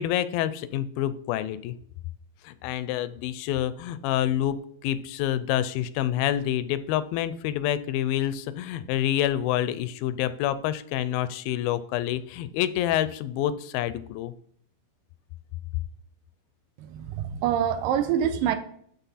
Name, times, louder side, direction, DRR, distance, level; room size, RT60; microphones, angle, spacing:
voice 1, 0.0-1.8 2.4-4.6 4.8-14.3, left 12 dB, 85° left, 14 dB, 2.3 m, -27 dB
voice 2, 16.8-18.6, right 9 dB, 85° right, 9 dB, 2.2 m, -26 dB
12.0 x 4.2 x 4.1 m, 0.63 s
omnidirectional pair, 4.2 m